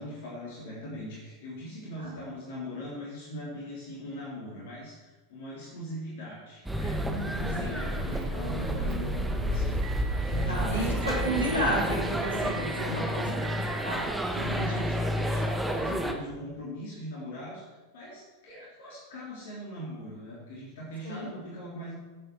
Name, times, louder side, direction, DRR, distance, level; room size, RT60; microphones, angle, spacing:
voice 1, 0.0-11.5 12.6-13.6 14.2-22.0, left 1 dB, 55° left, -6 dB, 3.5 m, -41 dB
sound 1, 6.6-16.1, equal, 5° right, 1.2 m, -30 dB
voice 2, 7.1-7.8 10.5-13.3 13.8-14.1 14.3-14.9 21.0-21.3, equal, 85° right, -5 dB, 3.7 m, -32 dB
Motor vehicle (road) / Engine, 8.1-14.2, right 6 dB, 50° right, 1.0 m, -43 dB
14.5 x 8.4 x 4.7 m, 1.2 s
figure-of-eight pair, 90°, 0 cm